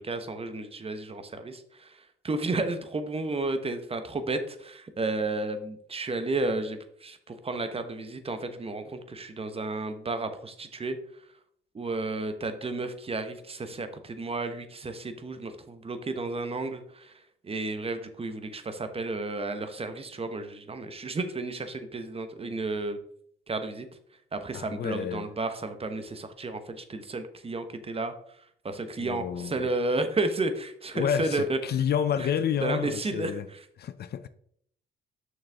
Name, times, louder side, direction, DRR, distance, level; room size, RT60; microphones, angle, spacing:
voice 1, 0.0-11.0 11.7-17.1 17.4-23.0 23.5-23.9 24.3-28.1 28.6-31.6 32.2-32.3 32.6-33.3, right 2 dB, 30° right, 1.0 m, -32 dB
voice 2, 24.5-25.3 29.0-29.6 30.9-33.5 33.8-34.3, left 8 dB, 55° left, 0.5 m, -29 dB
6.5 x 6.3 x 3.5 m
cardioid pair, 90°, 20 cm